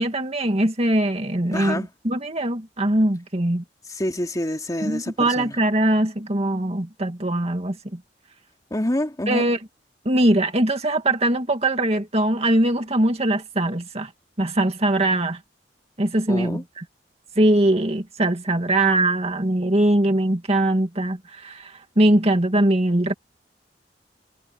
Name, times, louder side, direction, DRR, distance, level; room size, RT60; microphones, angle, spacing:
voice 1, 0.0-3.6 4.8-8.0 9.3-9.6 10.1-14.1 14.4-15.4 16.0-16.8 17.4-23.1, right 1 dB, 35° right, 2.2 m, -21 dB
voice 2, 1.5-1.9 3.9-5.6 8.7-9.5 16.3-16.6, left 1 dB, 20° left, 2.9 m, -27 dB
head